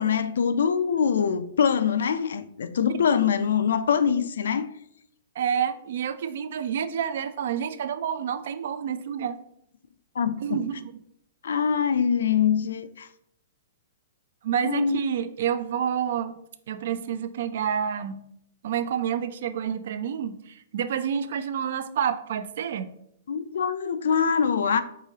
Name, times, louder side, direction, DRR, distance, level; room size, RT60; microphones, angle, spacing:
voice 1, 0.0-4.7 10.2-10.6 11.4-13.1 14.6-15.0 23.3-24.8, left 7 dB, 85° left, 0.4 m, -24 dB
voice 2, 5.4-9.4 10.4-10.9 14.4-16.3 16.7-18.2 18.6-22.9, right 8 dB, 60° right, 0.4 m, -28 dB
4.8 x 3.8 x 2.7 m
hypercardioid pair, 165°, 0 cm